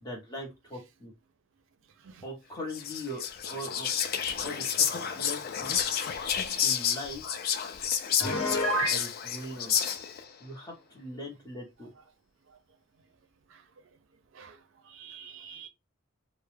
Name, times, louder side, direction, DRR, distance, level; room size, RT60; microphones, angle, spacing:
voice 1, 0.0-1.1 2.2-3.9 4.4-5.7 6.6-7.2 8.9-9.7 10.4-11.9, equal, 20° left, 0.9 m, -40 dB
Whispering, 2.7-10.3, left 8 dB, 45° left, 0.3 m, -30 dB
Piano, 8.2-9.0, equal, 90° left, 0.9 m, -28 dB
voice 2, 14.9-15.7, right 6 dB, 65° right, 0.4 m, -48 dB
2.2 x 2.0 x 3.2 m
head